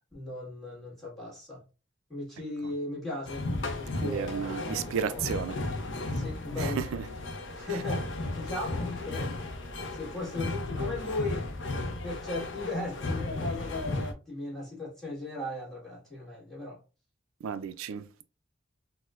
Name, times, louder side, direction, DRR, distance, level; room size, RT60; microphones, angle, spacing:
voice 1, 0.1-1.6 2.1-3.5 3.8-5.2 6.1-6.8 7.5-9.3 9.9-11.5 12.0-16.8, left 2 dB, ahead, 1.4 m, -37 dB
sound 1, 3.3-14.1, left 2 dB, 65° left, 0.5 m, -34 dB
voice 2, 4.0-5.6 6.6-7.1 7.7-7.8 17.4-18.2, right 7 dB, 85° right, 0.3 m, -33 dB
4.2 x 2.1 x 2.3 m
head